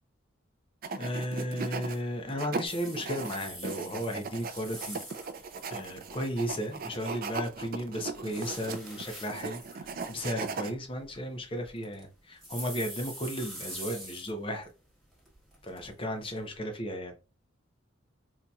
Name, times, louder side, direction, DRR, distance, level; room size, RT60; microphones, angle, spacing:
sound 1, 0.8-2.0 2.3-10.7, right 4 dB, 50° right, 0.4 m, -38 dB
voice 1, 0.9-5.0 5.7-14.7 15.6-17.1, equal, 30° left, 0.7 m, -35 dB
sound 2, 2.6-7.0 7.5-14.7 15.0-16.5, right 1 dB, ahead, 1.3 m, -46 dB
3.9 x 2.8 x 2.3 m
head